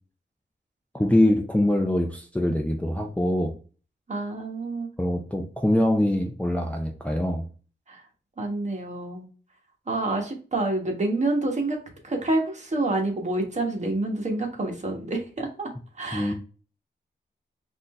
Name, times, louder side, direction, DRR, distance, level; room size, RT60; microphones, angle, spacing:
voice 1, 0.9-3.5 5.0-7.5 16.1-16.3, left 1 dB, 5° left, 2 dB, 0.5 m, -23 dB
voice 2, 4.1-4.9 7.9-8.0 8.4-9.3 9.9-11.8 12.0-15.7 16.0-16.3, right 2 dB, 40° right, 2 dB, 1.3 m, -28 dB
4.3 x 2.6 x 4.2 m, 0.37 s
wide cardioid pair, 130°, 19 cm